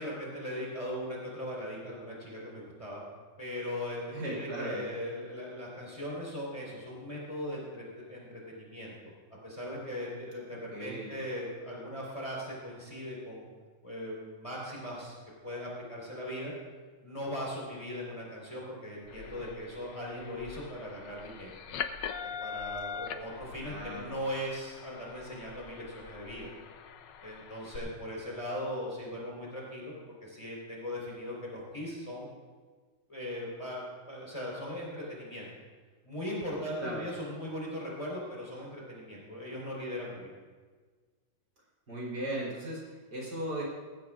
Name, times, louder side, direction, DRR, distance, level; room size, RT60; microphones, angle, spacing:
voice 1, 0.0-3.0 3.4-9.1 9.4-13.5 13.8-15.1 15.4-16.5 17.0-21.5 22.2-26.5 27.2-29.9 30.2-32.3 33.1-35.5 36.0-40.3, equal, 15° left, -4 dB, 4.1 m, -39 dB
voice 2, 4.1-4.9 10.7-11.1 23.6-24.2 36.8-37.2 41.9-43.6, right 1 dB, 65° right, -5 dB, 4.4 m, -37 dB
sound 1, 19.0-27.8, left 7 dB, 75° left, 1.4 m, -42 dB
19.0 x 15.5 x 2.5 m, 1.5 s
omnidirectional pair, 2.0 m